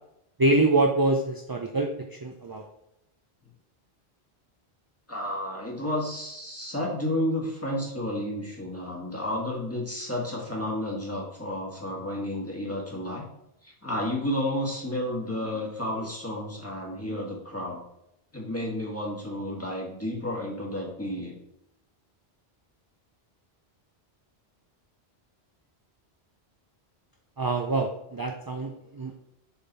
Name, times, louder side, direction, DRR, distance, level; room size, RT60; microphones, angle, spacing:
voice 1, 0.4-2.6 27.4-29.2, right 2 dB, 35° right, 2 dB, 0.4 m, -25 dB
voice 2, 5.1-13.2 13.6-17.8 18.3-21.4, left 1 dB, 15° left, -3 dB, 1.7 m, -31 dB
7.0 x 3.8 x 4.1 m, 0.81 s
omnidirectional pair, 1.1 m